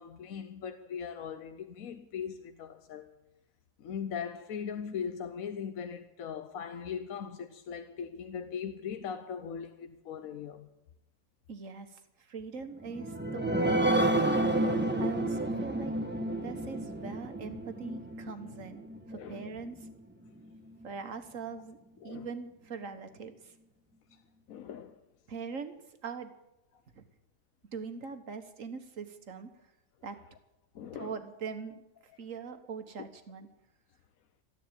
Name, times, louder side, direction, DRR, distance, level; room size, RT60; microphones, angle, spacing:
voice 1, 0.0-3.1 3.8-10.7 19.1-19.5 22.0-22.3 24.5-25.0 30.7-31.2, left 7 dB, 80° left, 1.3 m, -40 dB
voice 2, 11.5-14.0 14.6-15.9 16.4-19.9 20.8-21.8 22.0-23.5 25.3-25.8 26.0-26.3 27.0-27.1 27.7-29.5 30.0-30.2 31.0-31.8 32.2-33.5, right 5 dB, 70° right, 1.8 m, -42 dB
sound 1, 12.8-19.9 20.4-20.5 20.8-20.9, right 1 dB, 10° right, 1.0 m, -30 dB
14.0 x 10.5 x 9.0 m
omnidirectional pair, 1.5 m